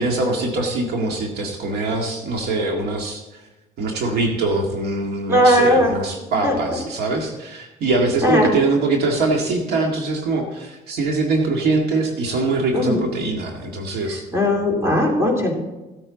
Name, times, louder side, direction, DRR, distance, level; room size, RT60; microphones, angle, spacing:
voice 1, 0.0-3.5 3.8-14.2, right 3 dB, 70° right, 2 dB, 2.0 m, -23 dB
voice 2, 5.3-5.9 6.4-6.6 8.2-8.5 12.7-13.0 14.3-15.5, equal, 15° right, -1 dB, 3.4 m, -17 dB
16.0 x 8.7 x 4.0 m, 1.0 s
cardioid pair, 110°, 17 cm